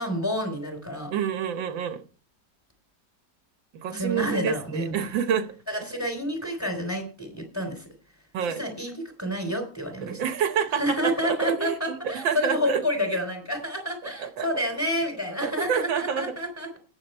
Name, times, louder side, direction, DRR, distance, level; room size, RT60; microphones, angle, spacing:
voice 1, 0.0-1.1 3.9-4.9 5.7-7.9 8.5-8.9 9.2-10.2 10.8-16.8, equal, 10° left, 3.3 m, -29 dB
voice 2, 1.1-2.0 3.8-5.5 8.3-8.6 10.0-12.8 14.0-14.5 15.4-16.3, right 7 dB, 90° right, 1.9 m, -28 dB
16.5 x 7.0 x 4.4 m
omnidirectional pair, 2.0 m